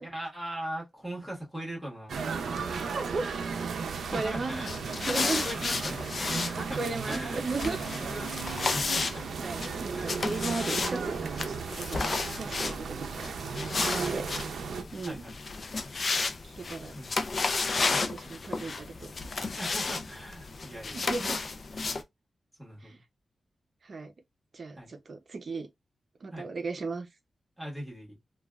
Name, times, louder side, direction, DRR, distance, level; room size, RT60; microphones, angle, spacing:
voice 1, 0.0-2.2 4.1-4.7 5.2-6.8 7.1-7.4 7.7-9.2 9.9-10.2 10.6-10.8 12.4-12.6 14.0-14.2 15.0-15.4 16.9-17.2 17.9-18.1 19.6-21.1 22.6-23.0 24.8-24.9 26.3-26.5 27.6-28.2, right 1 dB, 15° right, 1.5 m, -40 dB
sound 1, 2.1-14.8, right 5 dB, 90° right, 0.5 m, -35 dB
voice 2, 2.9-3.3 4.1-4.5 5.0-5.4 6.8-7.8 9.4-11.4 11.8-14.3 14.6-15.2 16.4-16.9 18.1-19.1 20.9-21.4 22.8-23.0 23.8-24.1 24.5-25.7 26.2-27.1, right 3 dB, 50° right, 0.6 m, -35 dB
sound 2, 3.1-15.0, right 2 dB, 20° left, 1.5 m, -57 dB
sound 3, 4.5-22.0, left 3 dB, 45° left, 0.4 m, -33 dB
3.2 x 2.3 x 2.3 m
wide cardioid pair, 115°, 0 cm